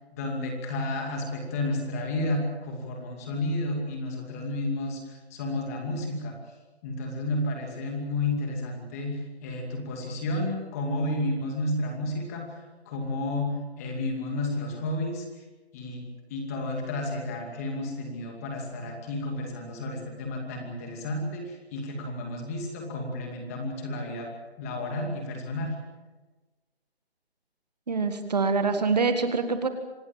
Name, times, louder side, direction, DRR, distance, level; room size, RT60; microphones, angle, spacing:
voice 1, 0.1-6.4 6.8-12.5 12.9-15.2 15.7-24.3 24.6-25.8, left 1 dB, 15° left, 2 dB, 2.5 m, -31 dB
voice 2, 27.9-29.7, right 4 dB, 40° right, 8 dB, 1.7 m, -25 dB
26.0 x 19.0 x 7.3 m, 1.2 s
hypercardioid pair, 165°, 32 cm